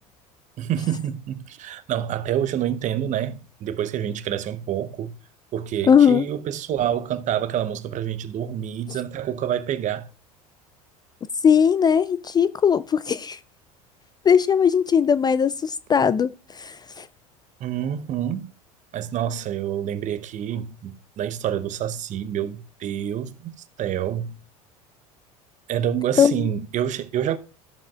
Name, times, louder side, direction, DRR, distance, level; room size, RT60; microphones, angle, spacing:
voice 1, 0.6-5.1 5.5-10.1 17.6-18.5 18.9-23.5 23.8-24.4 25.7-27.4, right 10 dB, 40° right, 0.7 m, -27 dB
voice 2, 5.9-6.2 11.4-13.4 14.3-17.0 26.2-26.3, left 7 dB, 20° left, 0.3 m, -19 dB
13.5 x 7.1 x 2.4 m
hypercardioid pair, 75°, 19 cm